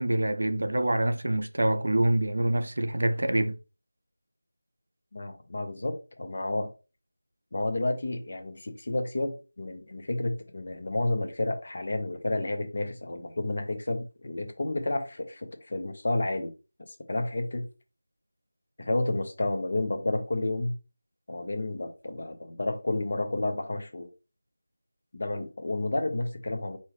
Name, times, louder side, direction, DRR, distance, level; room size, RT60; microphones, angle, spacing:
voice 1, 0.0-3.6, right 1 dB, 65° right, 0.6 m, -26 dB
voice 2, 5.1-6.7 7.5-16.5 16.9-17.7 18.8-20.7 21.3-24.1 25.1-26.8, left 2 dB, 50° left, 0.9 m, -31 dB
4.5 x 2.9 x 3.2 m
figure-of-eight pair, 170°, 0 cm